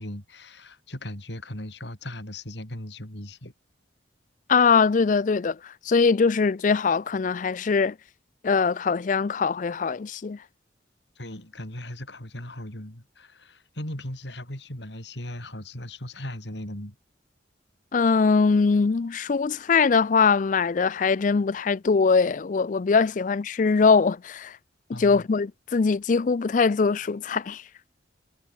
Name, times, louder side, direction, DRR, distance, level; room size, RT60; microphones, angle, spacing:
voice 1, 0.0-3.5 11.2-16.9 24.9-25.3, left 1 dB, 70° left, 5.1 m, -38 dB
voice 2, 4.5-7.9 8.4-10.4 17.9-24.5 24.9-27.6, left 5 dB, 45° left, 0.4 m, -22 dB
head